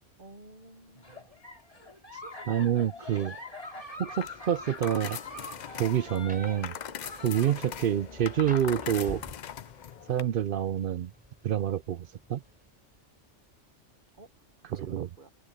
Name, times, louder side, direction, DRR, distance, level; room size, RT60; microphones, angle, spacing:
voice 1, 0.2-1.3 3.7-3.8 14.2-14.3 14.7-15.3, right 2 dB, 45° right, 1.6 m, -52 dB
Giggle, 1.0-7.7, left 1 dB, 30° left, 3.3 m, -44 dB
voice 2, 2.5-3.4 4.0-5.2 5.8-6.7 7.2-9.2 10.1-11.1 11.4-12.4 14.6-15.1, right 10 dB, 60° right, 0.6 m, -27 dB
Rain, 3.9-13.0, equal, 5° right, 4.1 m, -50 dB
sound 1, 4.1-10.2, left 9 dB, 55° left, 0.5 m, -41 dB
omnidirectional pair, 1.2 m